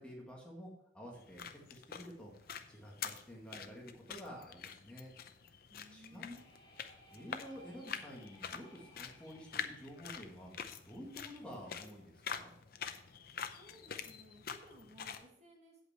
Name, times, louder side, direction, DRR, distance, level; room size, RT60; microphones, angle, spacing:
voice 1, 0.0-2.3 2.7-5.1 5.9-6.3 7.1-12.5, equal, 5° left, -3 dB, 1.9 m, -50 dB
sound 1, 1.1-15.3, left 7 dB, 55° left, 0.6 m, -46 dB
voice 2, 5.7-6.5 13.5-15.9, equal, 35° right, 0 dB, 1.8 m, -59 dB
sound 2, 5.9-11.8, equal, 25° left, 1.9 m, -63 dB
8.2 x 8.2 x 4.4 m, 0.71 s
head